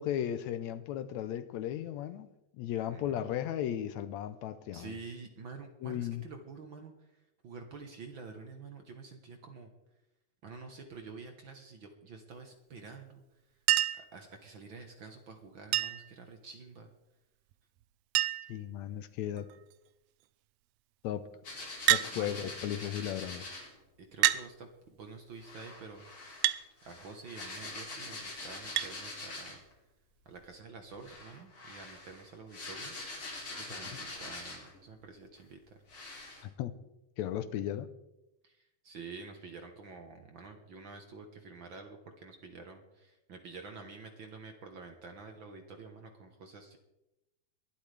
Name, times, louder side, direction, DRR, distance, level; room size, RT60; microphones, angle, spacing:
voice 1, 0.0-2.3 2.6-5.0 5.8-6.2 18.5-19.5 21.0-21.3 21.9-23.5 36.4-36.7 37.2-37.9, left 11 dB, 80° left, 13 dB, 1.9 m, -35 dB
voice 2, 4.7-7.1 7.4-9.7 10.4-13.2 14.0-16.9 22.1-22.5 24.0-26.1 26.8-29.6 30.2-32.9 33.5-35.8 38.4-46.8, right 4 dB, 55° right, 4 dB, 1.5 m, -48 dB
Chink clink, 13.7-14.1 15.7-16.1 17.5-17.6 17.8-17.9 18.2-18.6 19.4-19.7 21.9-22.1 23.2-23.3 24.2-24.5 26.4-26.6 28.8-28.9 30.4-30.5, right 14 dB, 80° right, 1.5 m, -27 dB
sound 1, 21.4-23.7 25.4-29.7 30.9-34.8 35.4-35.5 35.9-36.4, left 2 dB, 40° left, 4.3 m, -44 dB
22.5 x 12.0 x 3.4 m, 0.92 s
omnidirectional pair, 3.4 m